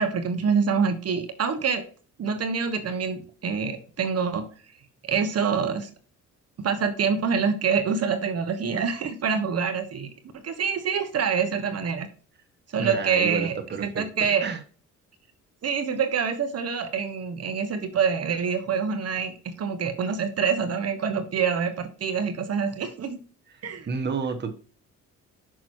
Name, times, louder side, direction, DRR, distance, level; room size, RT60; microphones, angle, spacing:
voice 1, 0.0-1.8 2.2-4.5 5.0-5.9 6.6-10.1 10.4-12.1 12.7-14.4 15.6-23.2 23.6-23.9, right 6 dB, 55° right, 7 dB, 1.4 m, -26 dB
voice 2, 12.8-14.0 14.4-14.6 23.5-24.5, right 5 dB, 35° right, 4 dB, 1.3 m, -30 dB
6.2 x 5.9 x 4.5 m, 0.40 s
cardioid pair, 90°, 30 cm